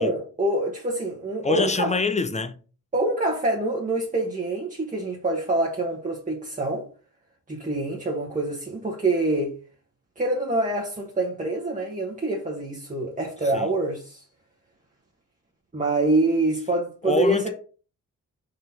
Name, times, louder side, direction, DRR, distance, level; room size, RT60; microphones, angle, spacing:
voice 1, 0.0-1.9 2.9-6.8 7.5-9.5 10.2-14.2 15.7-17.5, right 2 dB, 25° right, 1.4 m, -25 dB
voice 2, 1.4-2.6 13.5-13.7 17.0-17.5, left 4 dB, 20° left, 0.6 m, -25 dB
5.1 x 4.0 x 5.8 m
wide cardioid pair, 115°, 34 cm